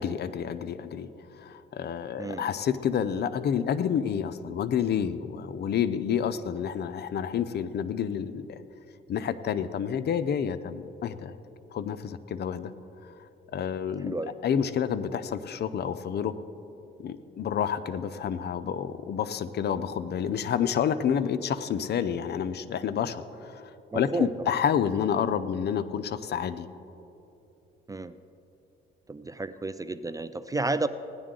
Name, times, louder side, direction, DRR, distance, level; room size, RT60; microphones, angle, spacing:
voice 1, 0.0-8.6 9.1-11.4 11.7-12.7 13.0-13.1 13.5-14.1 14.4-16.4 17.0-26.7, left 8 dB, 55° left, 13 dB, 0.5 m, -29 dB
voice 2, 2.2-2.5 14.0-14.4 23.9-24.6 27.9-28.2 29.1-30.9, right 3 dB, 15° right, 13 dB, 0.3 m, -32 dB
17.0 x 10.5 x 3.8 m, 2.9 s
cardioid pair, 90°, 20 cm